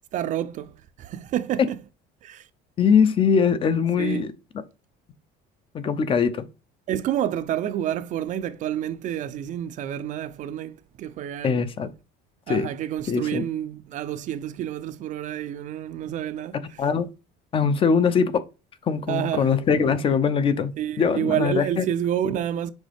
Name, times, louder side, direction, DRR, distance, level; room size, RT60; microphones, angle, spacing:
voice 1, 0.1-1.8 2.2-2.5 4.0-4.2 6.9-11.6 12.5-16.8 19.1-19.5 20.8-22.7, right 10 dB, 40° right, 0.4 m, -29 dB
voice 2, 2.8-4.3 5.7-6.4 11.4-11.9 12.5-12.7 13.1-13.4 16.8-17.1 17.5-18.3 18.9-20.7 21.0-21.8, left 6 dB, 25° left, 0.5 m, -21 dB
6.2 x 4.7 x 3.4 m
cardioid pair, 155°, 20 cm